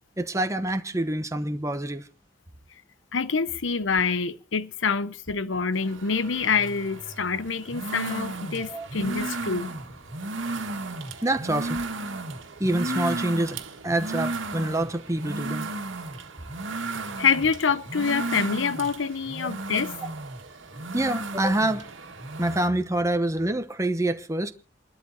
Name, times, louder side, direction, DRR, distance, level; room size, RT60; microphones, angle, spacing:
voice 1, 0.2-2.1 8.6-8.9 11.2-11.8 12.6-13.6 13.8-15.7 19.4-19.5 20.9-21.9 22.4-24.5, right 1 dB, 15° right, 0.9 m, -26 dB
voice 2, 3.1-9.7 17.2-19.9, left 5 dB, 70° left, 0.8 m, -26 dB
sound 1, 5.8-22.7, right 2 dB, 75° right, 1.8 m, -34 dB
29.0 x 12.5 x 2.8 m
head